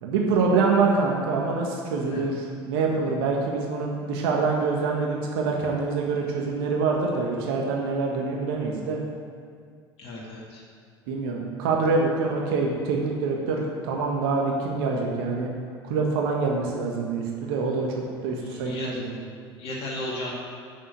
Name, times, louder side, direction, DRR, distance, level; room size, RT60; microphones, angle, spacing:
voice 1, 0.0-9.0 11.1-15.5 15.8-19.2, right 4 dB, 65° right, -1 dB, 1.6 m, -25 dB
voice 2, 10.0-10.6 18.4-18.9 19.6-20.3, left 1 dB, 50° left, -5 dB, 2.3 m, -34 dB
8.6 x 7.2 x 8.2 m, 2.1 s
hypercardioid pair, 75°, 13 cm